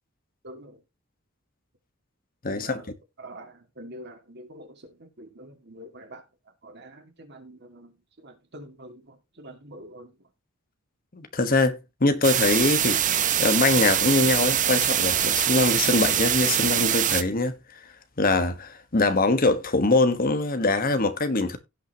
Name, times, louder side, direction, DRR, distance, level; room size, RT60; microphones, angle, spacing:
voice 1, 0.4-0.8 2.4-2.9 3.2-10.3, right 1 dB, 55° right, 2.2 m, -46 dB
voice 2, 2.4-2.8 11.1-13.0 13.4-17.6 18.2-21.6, left 3 dB, 45° left, 1.4 m, -23 dB
sound 1, 12.2-17.2, right 10 dB, 35° right, 0.8 m, -23 dB
17.0 x 5.8 x 2.9 m
head